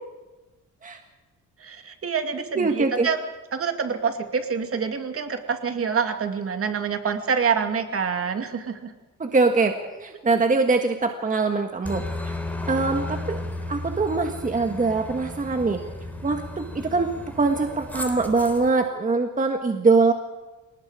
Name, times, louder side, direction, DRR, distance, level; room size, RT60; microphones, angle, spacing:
voice 1, 1.6-3.2 3.5-8.9, right 6 dB, 45° right, 6 dB, 2.5 m, -26 dB
voice 2, 2.5-3.1 9.2-12.4 12.6-13.4 13.7-15.8 16.2-20.1, right 3 dB, 25° right, 4 dB, 1.6 m, -23 dB
Aircraft, 11.9-18.7, left 2 dB, 5° left, 3.9 m, -34 dB
28.5 x 19.0 x 5.0 m, 1.2 s
cardioid pair, 110°, 31 cm